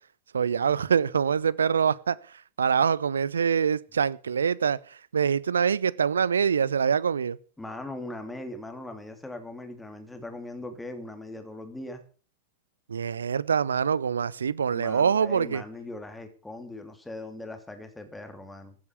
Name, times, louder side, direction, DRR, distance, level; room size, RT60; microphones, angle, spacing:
voice 1, 0.3-2.2 2.6-7.4 12.9-15.6, right 7 dB, 70° right, 0.6 m, -25 dB
voice 2, 7.6-12.0 14.7-18.7, left 2 dB, 5° left, 3.0 m, -40 dB
15.5 x 8.9 x 6.7 m
figure-of-eight pair, 90°, 0 cm